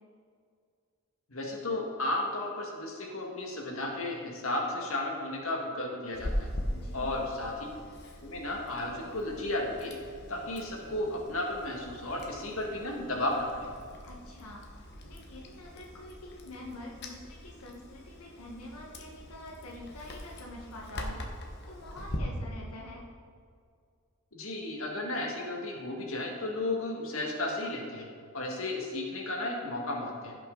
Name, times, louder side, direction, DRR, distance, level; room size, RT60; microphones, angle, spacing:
voice 1, 1.3-6.5 6.9-7.7 8.2-9.9 10.3-13.7 24.3-28.1 28.3-30.4, left 2 dB, 65° left, -1 dB, 1.8 m, -34 dB
Chewing mastication, 6.1-22.2, left 1 dB, 50° left, 1.2 m, -42 dB
voice 2, 6.7-7.2 14.0-23.1, left 1 dB, 85° left, -3 dB, 1.5 m, -46 dB
16.0 x 5.9 x 3.9 m, 2.2 s
head